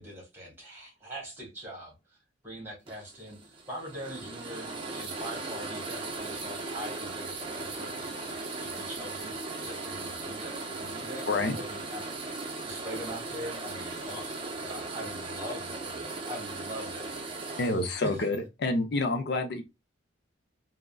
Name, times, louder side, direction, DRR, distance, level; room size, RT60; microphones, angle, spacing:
voice 1, 0.0-1.9 2.4-4.7 4.9-17.2 18.0-18.3, equal, 10° right, 1.3 m, -43 dB
sound 1, 2.9-18.4, right 3 dB, 30° right, 0.5 m, -38 dB
voice 2, 17.6-19.6, left 2 dB, 60° left, 0.5 m, -28 dB
3.5 x 2.0 x 2.3 m
head